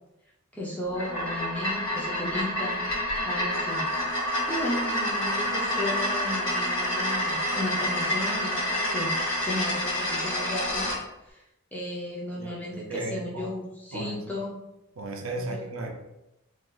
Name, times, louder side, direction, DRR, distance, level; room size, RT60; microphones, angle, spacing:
voice 1, 0.5-10.9 11.3-11.4 11.7-14.6 15.4-15.6, left 1 dB, 5° left, -4 dB, 0.5 m, -34 dB
sound 1, 0.9-11.0, equal, 60° left, 1.1 m, -28 dB
voice 2, 12.4-13.5 13.9-14.2 15.0-15.9, right 2 dB, 70° right, 3 dB, 0.5 m, -35 dB
2.5 x 2.4 x 3.7 m, 0.93 s
head